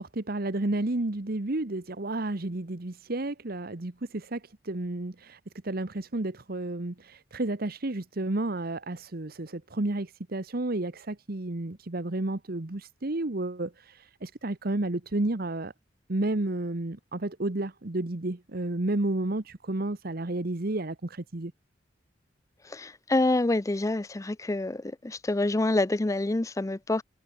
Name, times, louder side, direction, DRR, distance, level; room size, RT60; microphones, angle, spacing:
voice 1, 0.0-15.7 16.1-21.5, right 2 dB, 55° right, 1.2 m, -31 dB
voice 2, 22.6-27.0, left 2 dB, 15° left, 0.4 m, -27 dB
head